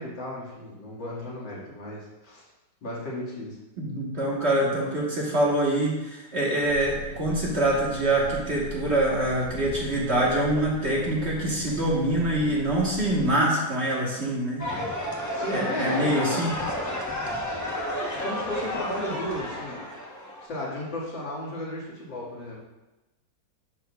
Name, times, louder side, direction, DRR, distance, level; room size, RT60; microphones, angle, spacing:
voice 1, 0.0-2.5 2.8-3.6 15.3-16.4 18.2-19.8 20.4-22.6, left 1 dB, 85° left, -6 dB, 2.7 m, -34 dB
voice 2, 3.8-14.6 15.5-16.5, right 1 dB, 40° right, -4 dB, 1.4 m, -25 dB
sound 1, 6.6-13.3, left 2 dB, 45° left, 3.2 m, -40 dB
sound 2, 14.6-20.4, left 1 dB, 20° left, 0.4 m, -31 dB
10.5 x 6.1 x 2.3 m, 1.1 s
omnidirectional pair, 2.0 m